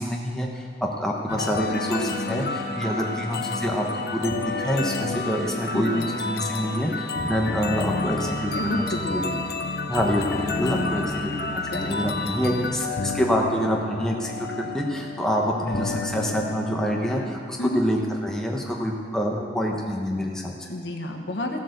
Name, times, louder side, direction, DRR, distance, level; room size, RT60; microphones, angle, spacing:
voice 1, 0.0-3.8 4.1-4.3 4.6-9.2 9.9-20.7, equal, 5° left, -1 dB, 1.2 m, -26 dB
sound 1, 1.3-17.3, left 3 dB, 60° left, 0.7 m, -30 dB
voice 2, 5.7-6.1 8.5-9.2 10.9-11.9 17.6-17.8 20.7-21.6, left 1 dB, 90° left, 3 dB, 1.4 m, -31 dB
14.5 x 8.5 x 6.7 m, 2.2 s
head